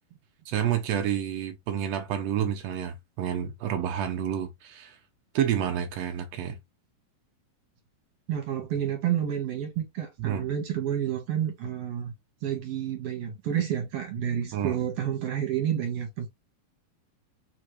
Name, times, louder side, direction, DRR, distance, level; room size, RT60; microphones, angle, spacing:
voice 1, 0.4-5.0 5.3-6.6 10.2-10.5 14.5-14.8, right 9 dB, 85° right, 1.4 m, -29 dB
voice 2, 8.3-12.1 12.4-16.3, right 10 dB, 60° right, 1.9 m, -29 dB
4.5 x 3.7 x 3.1 m
omnidirectional pair, 4.0 m